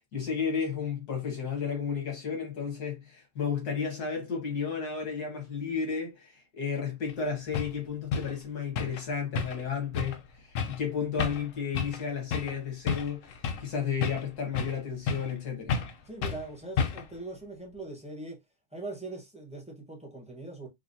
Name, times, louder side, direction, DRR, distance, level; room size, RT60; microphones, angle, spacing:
voice 1, 0.1-13.3 13.6-15.8, left 6 dB, 85° left, 2.0 m, -33 dB
sound 1, 7.1-7.2 7.5-7.7 8.1-8.3 8.7-9.0 9.3-9.7 9.9-10.2 10.5-10.8 11.2-11.5 11.7-12.0 12.3-12.5 12.9-13.7 14.0-14.8 15.1-15.4 15.7-15.9 16.2-16.4 16.8-17.1, left 6 dB, 65° left, 1.0 m, -31 dB
voice 2, 16.0-18.4 18.7-20.7, right 2 dB, 5° right, 0.8 m, -41 dB
4.9 x 2.3 x 2.7 m
omnidirectional pair, 1.6 m